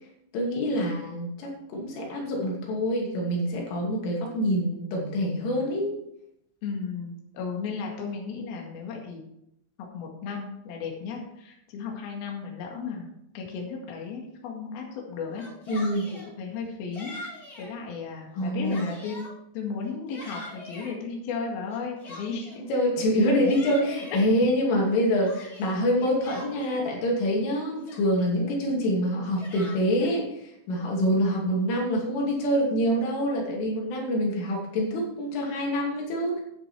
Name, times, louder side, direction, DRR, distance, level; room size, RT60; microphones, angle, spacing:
voice 1, 0.3-5.9 15.7-16.1 18.4-18.9 22.7-30.4 30.7-36.4, equal, 85° left, -1 dB, 5.1 m, -26 dB
voice 2, 6.6-9.2 9.9-13.1 13.3-15.5 16.1-17.1 17.6-19.3 19.5-22.6 24.1-24.2, left 5 dB, 60° left, 0 dB, 3.4 m, -35 dB
Yell, 15.3-16.3 16.9-17.7 18.3-19.3 19.8-20.9 21.7-22.6 23.2-24.3 24.8-26.9 27.5-27.6 27.8-28.3 29.1-30.2, left 2 dB, 30° left, 2.0 m, -43 dB
11.0 x 9.6 x 4.5 m, 0.78 s
omnidirectional pair, 5.6 m